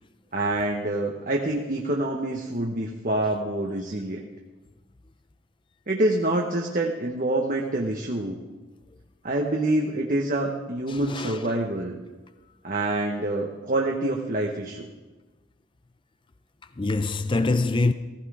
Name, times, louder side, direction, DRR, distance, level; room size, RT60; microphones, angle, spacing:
voice 1, 0.3-4.2 5.9-8.4 9.2-12.0 12.6-14.9, right 1 dB, 40° right, 1.2 m, -26 dB
voice 2, 10.9-11.5 16.8-17.9, left 3 dB, 25° left, 0.5 m, -24 dB
17.0 x 15.0 x 4.9 m
head